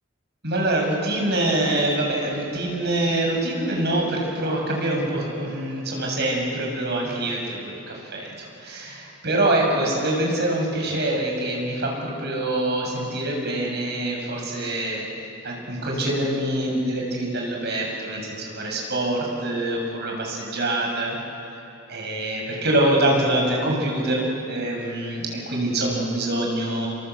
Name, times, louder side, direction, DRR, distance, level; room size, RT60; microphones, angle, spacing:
voice 1, 0.4-15.1 15.4-21.2 21.9-26.9, right 1 dB, 60° right, 0 dB, 6.9 m, -25 dB
28.0 x 23.0 x 8.4 m, 2.9 s
head